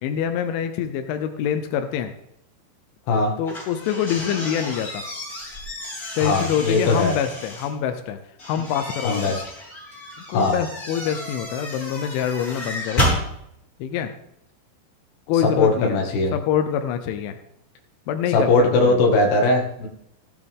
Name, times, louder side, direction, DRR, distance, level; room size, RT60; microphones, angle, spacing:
voice 1, 0.0-2.1 3.4-5.0 6.2-8.2 8.5-9.4 10.3-13.1 13.8-14.1 15.3-16.0 16.3-17.4 18.1-19.0, left 9 dB, 90° left, 7 dB, 3.2 m, -25 dB
sound 1, 3.4-7.7 8.4-13.2, equal, 20° left, 4.8 m, -31 dB
voice 2, 6.2-7.1 9.0-9.4 10.3-10.6 15.6-16.4 18.3-19.9, left 3 dB, 65° left, 1 dB, 3.5 m, -19 dB
15.5 x 8.7 x 3.6 m, 0.76 s
omnidirectional pair, 5.3 m